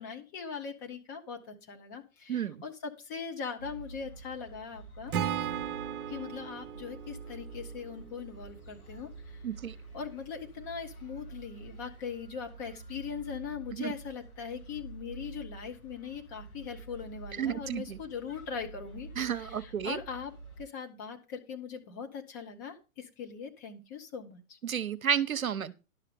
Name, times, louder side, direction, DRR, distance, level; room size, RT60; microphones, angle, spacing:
voice 1, 0.0-5.1 6.1-9.4 9.9-20.3 20.6-24.6, left 6 dB, 15° left, 0.6 m, -41 dB
voice 2, 2.3-2.6 9.4-9.8 13.8-13.9 17.4-18.0 19.2-20.0 24.6-25.7, right 8 dB, 70° right, 0.9 m, -31 dB
sound 1, 3.6-20.6, right 3 dB, 75° left, 4.2 m, -48 dB
Acoustic guitar / Strum, 5.1-8.3, right 9 dB, 35° right, 1.0 m, -36 dB
11.0 x 6.6 x 4.9 m
figure-of-eight pair, 120°, 43 cm